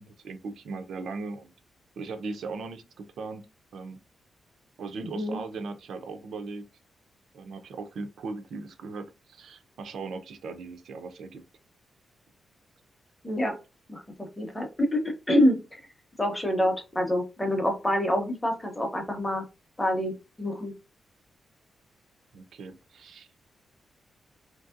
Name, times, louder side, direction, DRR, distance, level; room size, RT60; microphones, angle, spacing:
voice 1, 0.0-1.5 2.0-3.4 3.7-4.0 4.8-6.7 7.3-11.4 22.3-23.3, right 4 dB, 75° right, 0.4 m, -38 dB
voice 2, 5.0-5.4 13.2-13.6 13.9-15.8 16.2-19.4 19.8-20.7, left 1 dB, 10° left, 0.6 m, -27 dB
3.1 x 2.6 x 2.4 m
wide cardioid pair, 175°, 0 cm